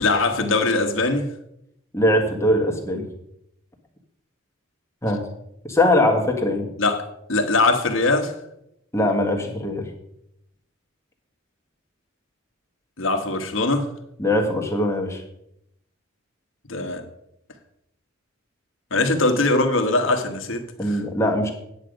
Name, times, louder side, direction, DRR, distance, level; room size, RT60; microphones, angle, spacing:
voice 1, 0.0-1.3 6.8-8.3 13.0-13.9 16.7-17.0 18.9-21.0, left 2 dB, 65° left, 1.4 m, -21 dB
voice 2, 1.9-3.1 5.0-5.3 5.6-6.7 8.9-9.9 14.2-15.2 20.8-21.5, left 1 dB, 15° left, 1.6 m, -21 dB
9.7 x 8.2 x 5.2 m
head